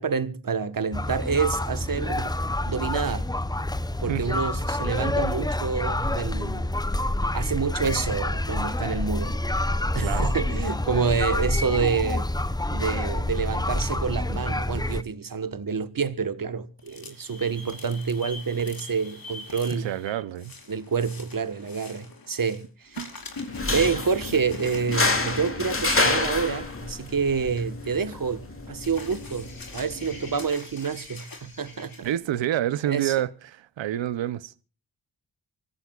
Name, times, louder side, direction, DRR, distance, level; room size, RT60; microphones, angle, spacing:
voice 1, 0.0-2.3 2.7-3.3 4.0-6.7 7.3-9.4 9.9-12.4 12.7-19.9 20.7-23.0 23.7-32.1 32.9-33.2, right 5 dB, 50° right, 1.4 m, -28 dB
sound 1, 0.9-15.0, left 1 dB, 10° left, 0.7 m, -27 dB
voice 2, 10.0-10.3 19.7-20.5 23.0-23.1 32.0-34.5, right 12 dB, 90° right, 0.8 m, -28 dB
sound 2, 16.8-22.6 22.9-32.1, left 3 dB, 50° left, 4.5 m, -42 dB
sound 3, 23.5-30.5, left 2 dB, 30° left, 2.7 m, -29 dB
25.0 x 16.5 x 2.4 m
cardioid pair, 45°, 44 cm